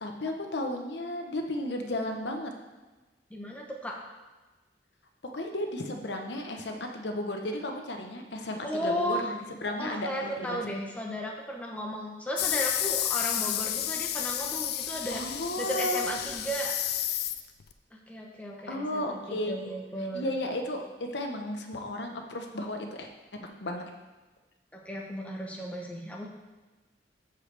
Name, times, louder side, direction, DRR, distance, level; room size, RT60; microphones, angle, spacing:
voice 1, 0.0-2.5 5.2-10.6 15.1-16.2 18.7-19.6 20.1-23.9, left 1 dB, 75° left, 3 dB, 1.0 m, -34 dB
voice 2, 3.3-4.0 8.6-9.3 9.8-15.2 15.6-16.7 17.9-20.3 24.7-26.3, equal, 10° left, -1 dB, 0.9 m, -35 dB
sound 1, 12.4-17.7, left 11 dB, 60° left, 0.4 m, -31 dB
13.5 x 4.8 x 3.4 m, 1.2 s
head